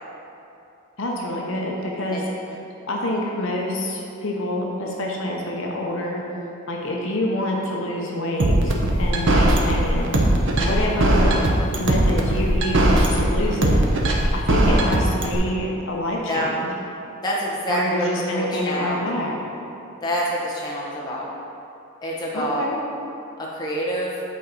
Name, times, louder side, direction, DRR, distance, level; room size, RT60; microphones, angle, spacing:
voice 1, 1.0-2.2 2.9-6.2 6.7-10.1 10.5-11.4 11.8-13.8 14.3-16.7 17.7-19.4 22.3-22.8, left 1 dB, 60° left, -1 dB, 0.8 m, -27 dB
sound 1, 8.4-15.4, right 1 dB, 55° right, 0.8 m, -18 dB
voice 2, 17.2-19.0 20.0-21.3 22.0-22.6 23.4-24.1, equal, 20° left, -5 dB, 0.9 m, -26 dB
8.2 x 4.5 x 4.0 m, 2.8 s
head